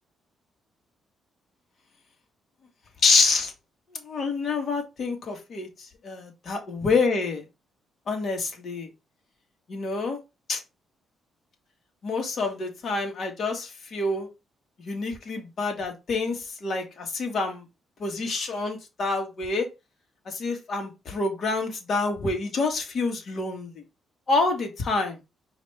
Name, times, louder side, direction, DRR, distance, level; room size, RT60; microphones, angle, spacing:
voice 1, 3.0-3.5 4.1-5.7 6.0-7.4 8.1-8.9 9.7-10.2 10.5-10.6 12.0-14.3 14.8-17.6 18.0-19.7 20.3-23.7 24.3-25.1, left 3 dB, 55° left, 1.6 m, -27 dB
5.1 x 2.8 x 3.3 m
cardioid pair, 90°, 0 cm